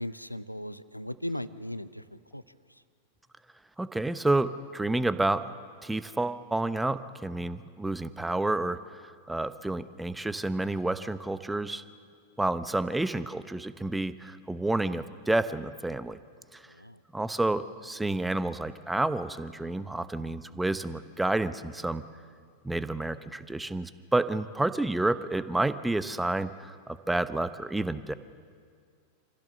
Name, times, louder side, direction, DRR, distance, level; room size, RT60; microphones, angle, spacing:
voice 1, 0.0-2.4 16.7-17.0, left 1 dB, 90° left, 16 dB, 0.7 m, -37 dB
voice 2, 3.8-5.5 5.8-11.8 12.4-16.2 16.5-16.6 17.1-22.0 22.6-28.1, right 2 dB, 5° right, 13 dB, 0.9 m, -30 dB
28.0 x 15.5 x 6.9 m, 2.1 s
figure-of-eight pair, 90°, 0 cm